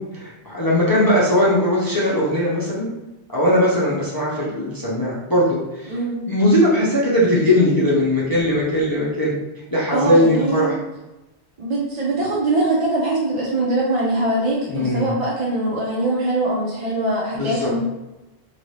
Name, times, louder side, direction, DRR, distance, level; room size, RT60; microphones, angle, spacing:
voice 1, 0.1-2.9 3.3-5.9 6.3-9.3 9.7-10.8 14.7-15.1 17.4-17.7, left 1 dB, 25° left, -7 dB, 0.5 m, -19 dB
voice 2, 5.9-6.2 9.9-10.7 11.6-17.8, right 2 dB, 45° right, -5 dB, 0.5 m, -22 dB
2.9 x 2.6 x 3.1 m, 1.0 s
omnidirectional pair, 1.1 m